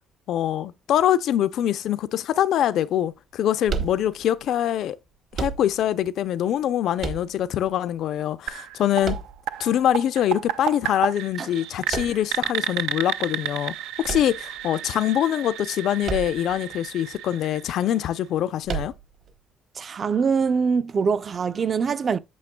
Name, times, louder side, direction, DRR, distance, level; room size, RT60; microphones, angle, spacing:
voice 1, 0.3-5.0 5.3-9.2 9.6-18.9, left 11 dB, 55° left, 0.5 m, -24 dB
sound 1, 3.7-4.4 5.3-6.0 7.0-7.7 9.0-9.8 11.9-12.5 14.0-14.9 16.0-16.6 16.9-17.0 18.6-19.3, right 6 dB, 45° right, 1.0 m, -31 dB
sound 2, 8.5-18.3, right 12 dB, 90° right, 0.4 m, -32 dB
voice 2, 19.8-22.2, right 5 dB, 30° right, 0.4 m, -23 dB
8.4 x 7.1 x 2.2 m
cardioid pair, 165°, 0 cm